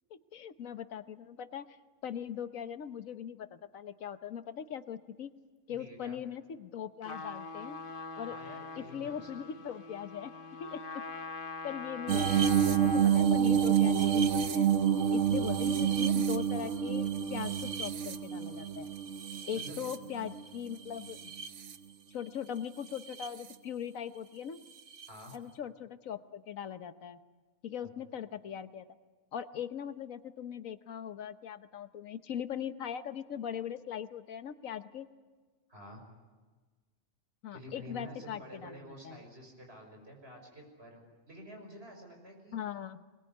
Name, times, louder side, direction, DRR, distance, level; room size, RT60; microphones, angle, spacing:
voice 1, 0.1-1.8 2.0-5.3 5.7-7.8 8.2-8.4 8.8-10.3 10.6-11.0 11.6-12.4 12.8-14.7 15.1-18.9 19.5-21.3 22.1-24.6 25.3-27.2 27.6-28.9 29.3-35.1 37.4-39.2 42.5-43.0, left 9 dB, 85° left, 12 dB, 1.4 m, -40 dB
voice 2, 5.8-6.2 8.3-9.3 19.5-19.8 25.1-25.4 35.7-36.0 37.5-42.6, equal, 50° right, 1 dB, 6.2 m, -49 dB
Trumpet, 7.0-13.3, left 4 dB, 45° left, 1.4 m, -43 dB
sound 1, 12.1-20.4 21.0-21.7 23.0-23.3 25.0-25.1, right 8 dB, 65° right, 1.2 m, -28 dB
22.0 x 21.5 x 9.4 m, 1.3 s
omnidirectional pair, 1.4 m